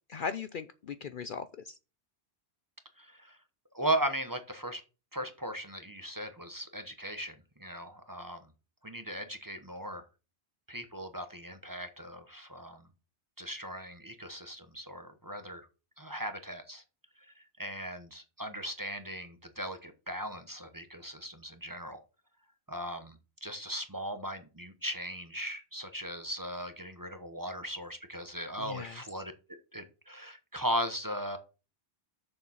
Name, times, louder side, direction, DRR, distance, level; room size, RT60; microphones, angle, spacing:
voice 1, 0.1-1.7 28.6-29.0, left 6 dB, 55° left, 12 dB, 0.7 m, -38 dB
voice 2, 3.0-3.4 3.7-4.8 5.1-8.4 8.8-10.0 10.7-12.8 13.4-15.7 16.0-16.8 17.3-22.0 22.7-29.3 29.7-31.4, right 1 dB, 20° right, 8 dB, 0.9 m, -38 dB
6.9 x 6.8 x 5.6 m, 0.32 s
omnidirectional pair, 1.2 m